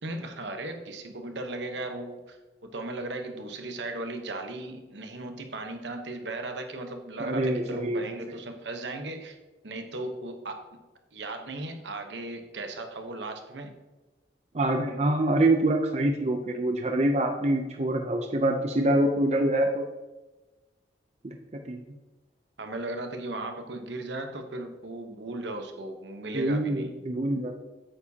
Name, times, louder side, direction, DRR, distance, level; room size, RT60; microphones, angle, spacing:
voice 1, 0.0-9.4 9.6-10.7 11.1-13.8 22.6-26.9, right 2 dB, 75° right, 5 dB, 1.0 m, -36 dB
voice 2, 7.2-8.1 14.5-19.8 21.2-21.8 26.3-27.5, right 1 dB, 35° right, 4 dB, 0.5 m, -25 dB
8.8 x 7.1 x 2.8 m, 1.1 s
head